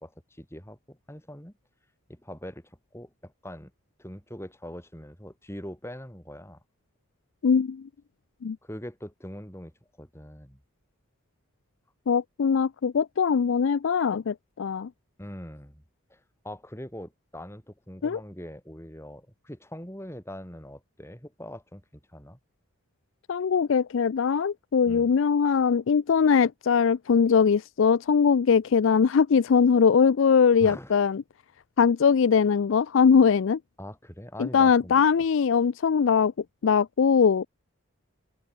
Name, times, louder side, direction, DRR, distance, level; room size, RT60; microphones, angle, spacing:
voice 1, 0.0-1.5 2.1-3.7 4.0-6.6 8.6-9.7 10.0-10.6 15.2-15.8 16.1-22.4 24.9-25.1 30.6-31.0 33.8-35.0, equal, 10° left, 7.1 m, -42 dB
voice 2, 7.4-7.8 8.4-8.6 12.1-14.9 18.0-18.2 23.3-31.2 31.8-33.6 34.4-36.3 36.6-37.5, left 6 dB, 65° left, 0.4 m, -21 dB
head